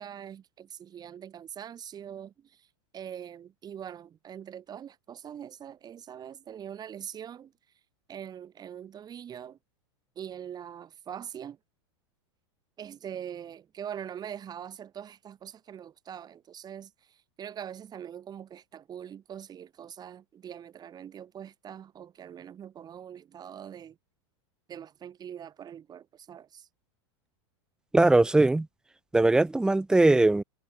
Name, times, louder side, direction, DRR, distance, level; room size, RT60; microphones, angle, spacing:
voice 1, 0.0-2.3 2.9-7.5 8.1-9.6 10.1-11.6 12.8-16.9 17.4-24.0 24.7-26.7, right 9 dB, 25° right, 1.6 m, -42 dB
voice 2, 27.9-28.7 29.1-30.4, right 2 dB, 5° right, 0.4 m, -20 dB
hypercardioid pair, 115°, 15 cm